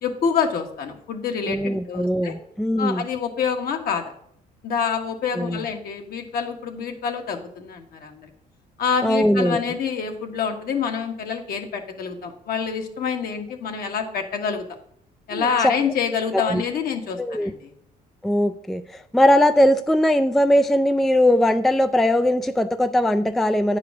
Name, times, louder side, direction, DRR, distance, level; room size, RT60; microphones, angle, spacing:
voice 1, 0.0-2.3 2.8-4.0 4.6-8.3 8.8-14.6 15.3-17.7, left 6 dB, 60° left, 4 dB, 1.5 m, -27 dB
voice 2, 1.5-3.0 5.4-5.6 9.0-9.6 15.3-15.5 16.3-16.6 17.2-17.5 18.2-23.8, left 1 dB, ahead, 10 dB, 0.3 m, -20 dB
9.5 x 5.0 x 5.9 m, 0.69 s
cardioid pair, 110°, 17 cm